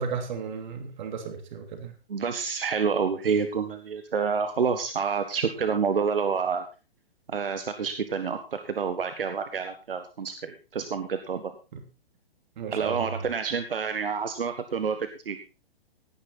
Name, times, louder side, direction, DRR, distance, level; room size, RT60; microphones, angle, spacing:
voice 1, 0.0-1.9 12.6-13.1, right 6 dB, 50° right, 6 dB, 3.0 m, -34 dB
voice 2, 2.1-6.6 7.3-11.5 12.7-15.4, right 6 dB, 65° right, 9 dB, 1.6 m, -28 dB
17.5 x 9.9 x 4.2 m, 0.31 s
figure-of-eight pair, 120°, 30 cm